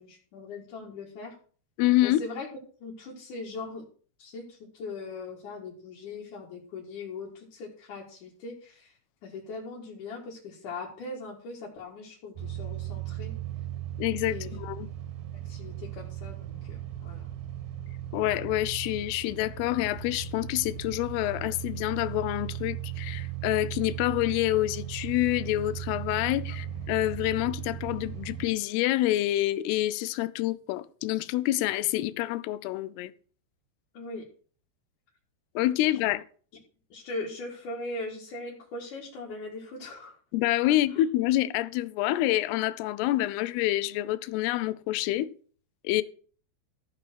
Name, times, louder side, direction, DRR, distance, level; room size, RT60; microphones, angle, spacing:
voice 1, 0.0-1.3 2.0-2.5 2.8-3.8 4.2-8.9 9.2-13.3 14.3-14.5 15.3-17.3 33.9-34.2 36.0-36.1 36.9-40.1, left 3 dB, 55° left, 3.1 m, -40 dB
voice 2, 1.8-2.2 14.0-14.9 18.1-33.1 35.6-36.2 40.3-45.3 45.8-46.0, left 15 dB, 80° left, 2.5 m, -27 dB
sound 1, 12.4-28.5, right 10 dB, 65° right, 2.6 m, -37 dB
14.0 x 6.0 x 6.2 m
omnidirectional pair, 5.0 m